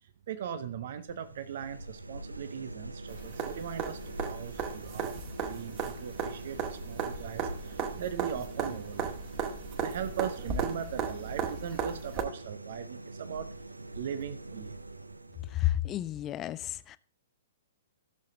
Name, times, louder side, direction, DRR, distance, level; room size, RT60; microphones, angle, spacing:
voice 1, 0.0-9.2 9.8-13.5 13.9-14.8, right 8 dB, 55° right, 0.7 m, -39 dB
sound 1, 1.0-15.7, right 2 dB, 90° right, 0.5 m, -44 dB
sound 2, 3.1-12.2 14.2-14.3, right 6 dB, 30° right, 1.8 m, -36 dB
voice 2, 15.5-17.0, left 14 dB, 25° left, 0.5 m, -31 dB
14.0 x 6.7 x 3.8 m
figure-of-eight pair, 115°, 0 cm